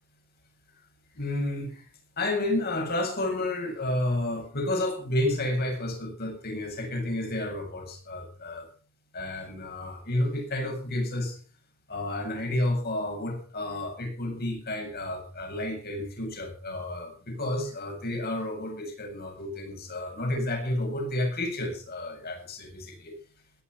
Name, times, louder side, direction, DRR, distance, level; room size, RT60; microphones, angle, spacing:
voice 1, 1.2-1.9 2.2-8.7 9.1-11.4 11.9-23.1, left 1 dB, 50° left, 2 dB, 7.6 m, -31 dB
18.0 x 11.5 x 5.9 m, 0.40 s
head